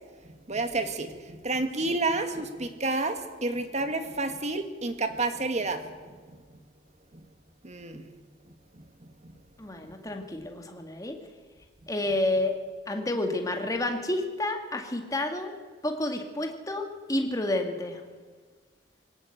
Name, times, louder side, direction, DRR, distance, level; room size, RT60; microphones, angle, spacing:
voice 1, 0.5-5.9 7.1-7.2 7.6-8.1 8.8-9.3 9.8-9.9, right 2 dB, 40° right, 8 dB, 1.7 m, -30 dB
voice 2, 9.6-11.2 11.9-12.5 12.9-15.5 15.8-18.0, left 2 dB, 20° left, 4 dB, 2.0 m, -30 dB
21.0 x 17.5 x 8.0 m, 1.5 s
head